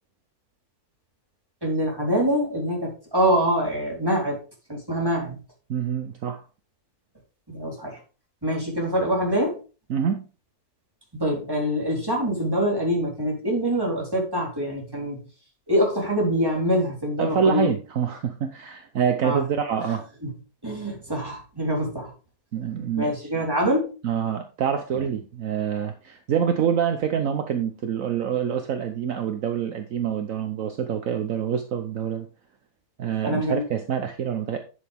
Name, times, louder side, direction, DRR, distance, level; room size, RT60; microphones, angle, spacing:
voice 1, 1.6-4.4 4.7-5.4 7.5-8.0 8.4-9.6 11.1-15.3 15.7-17.7 19.2-19.4 19.9-20.3 20.6-22.1 23.0-23.9 24.9-25.0 33.2-33.6, equal, 15° right, -2 dB, 4.0 m, -25 dB
voice 2, 5.7-6.4 9.9-10.2 17.2-20.0 22.5-23.3 24.0-32.3 33.0-34.6, right 7 dB, 65° right, 7 dB, 1.2 m, -26 dB
10.5 x 7.0 x 3.5 m, 0.34 s
omnidirectional pair, 1.6 m